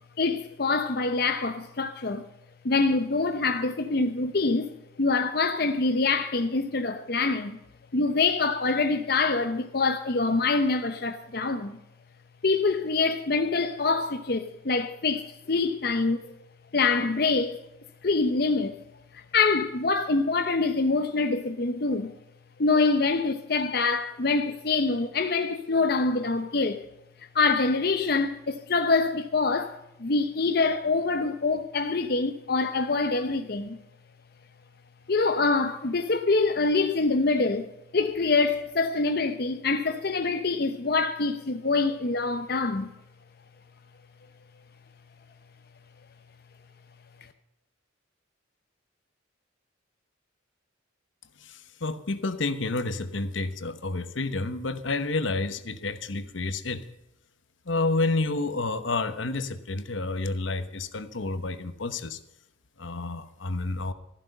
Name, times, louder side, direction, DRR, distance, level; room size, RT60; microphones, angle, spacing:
voice 1, 0.2-2.2 2.6-7.6 7.9-11.8 12.4-16.3 16.7-17.6 18.0-18.8 19.1-22.1 22.6-26.8 27.3-33.8 35.1-37.7 37.9-42.9, left 3 dB, 55° left, 0.8 m, -25 dB
voice 2, 51.4-56.9 57.7-62.2 62.8-63.9, left 3 dB, 80° left, 1.0 m, -30 dB
13.5 x 11.5 x 5.5 m
head